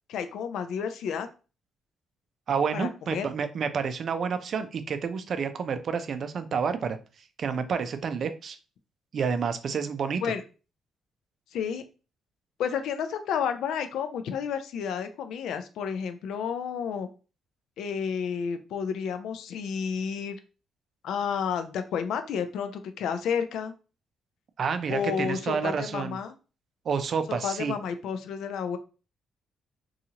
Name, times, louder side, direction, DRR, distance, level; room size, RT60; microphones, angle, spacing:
voice 1, 0.1-1.3 2.7-3.3 10.2-10.4 11.5-11.8 12.6-17.1 17.8-20.4 21.0-23.7 24.9-26.3 27.4-28.8, left 7 dB, 80° left, 9 dB, 0.4 m, -31 dB
voice 2, 2.5-7.0 7.4-8.6 9.1-10.3 24.6-26.2 26.9-27.7, right 6 dB, 55° right, 10 dB, 0.4 m, -29 dB
2.8 x 2.3 x 2.8 m, 0.34 s
cardioid pair, 90°, 0 cm